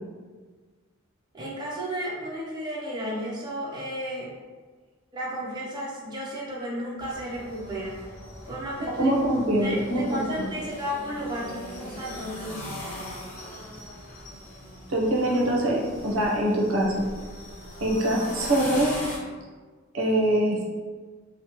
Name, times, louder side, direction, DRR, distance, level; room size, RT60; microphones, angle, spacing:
voice 1, 1.3-4.3 5.1-8.0 8.5-9.2 9.6-12.7, equal, 20° right, -5 dB, 0.5 m, -33 dB
sound 1, 7.0-19.2, left 1 dB, 35° left, 1.1 m, -40 dB
voice 2, 9.0-10.2 14.9-17.1 17.8-18.9 19.9-20.6, right 1 dB, 70° right, -3 dB, 0.6 m, -23 dB
2.7 x 2.0 x 2.8 m, 1.4 s
head